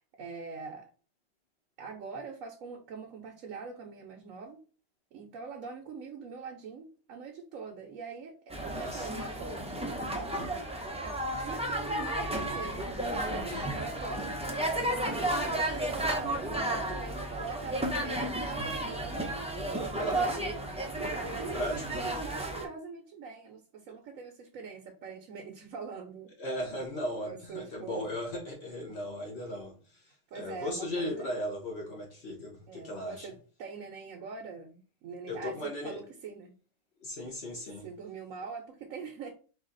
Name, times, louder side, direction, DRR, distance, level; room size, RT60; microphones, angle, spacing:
voice 1, 0.2-0.9 1.8-4.6 5.1-10.6 11.4-14.6 14.9-20.6 20.9-26.3 27.2-28.1 30.3-31.3 32.7-36.5 37.8-39.3, right 5 dB, 70° right, 1.1 m, -43 dB
sound 1, 8.5-22.7, right 1 dB, 10° right, 0.4 m, -33 dB
voice 2, 8.6-9.1 13.5-13.7 19.9-20.3 21.5-21.8 26.4-33.3 35.3-36.0 37.0-37.9, left 1 dB, 50° left, 1.0 m, -37 dB
4.7 x 2.4 x 3.8 m
omnidirectional pair, 1.5 m